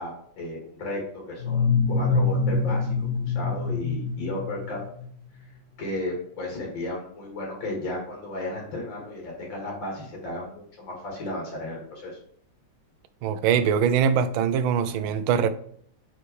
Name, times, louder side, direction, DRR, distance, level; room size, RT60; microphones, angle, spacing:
voice 1, 0.0-2.9 3.3-4.8 5.5-12.2, left 1 dB, 75° left, 2.7 m, -34 dB
sound 1, 1.4-5.1, left 4 dB, 45° left, 2.3 m, -25 dB
voice 2, 13.2-15.5, right 7 dB, 90° right, 1.4 m, -22 dB
5.8 x 4.8 x 4.7 m
omnidirectional pair, 2.1 m